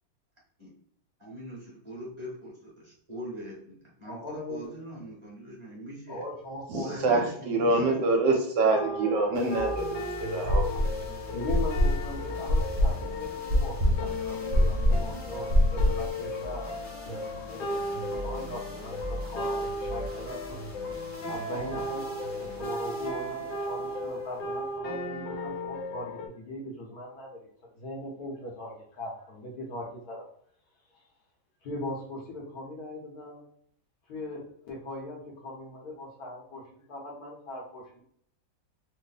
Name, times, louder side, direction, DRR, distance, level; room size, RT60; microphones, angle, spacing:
voice 1, 1.2-6.2 6.8-8.0, right 1 dB, 20° right, -5 dB, 1.1 m, -42 dB
voice 2, 4.1-4.7 6.1-7.8 9.2-9.4 11.3-20.6 21.2-27.4 27.7-30.3 31.6-33.4 34.1-38.0, left 1 dB, 60° left, -2 dB, 1.2 m, -40 dB
voice 3, 6.7-10.0 10.3-10.6, right 3 dB, 70° right, 2 dB, 1.2 m, -25 dB
sound 1, 8.7-26.3, left 2 dB, 75° left, 1.4 m, -36 dB
sound 2, 9.3-24.7, right 1 dB, 45° left, 0.7 m, -41 dB
sound 3, 10.5-11.1 11.5-16.1, equal, 50° right, 0.5 m, -24 dB
3.3 x 2.1 x 3.9 m, 0.63 s
omnidirectional pair, 2.0 m